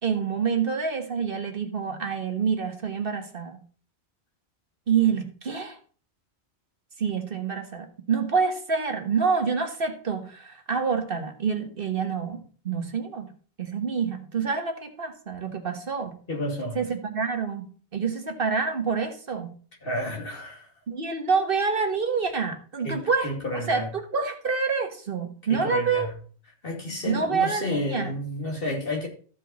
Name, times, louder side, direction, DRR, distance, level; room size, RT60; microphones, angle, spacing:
voice 1, 0.0-3.6 4.9-5.8 7.0-13.3 13.6-16.2 16.7-17.6 17.9-19.5 20.9-26.1 27.1-28.1, right 5 dB, 55° right, 1.6 m, -27 dB
voice 2, 16.3-16.8 19.8-20.7 22.8-23.9 25.5-26.1 26.6-29.1, left 1 dB, 55° left, 2.6 m, -31 dB
14.5 x 5.6 x 4.1 m
omnidirectional pair, 1.1 m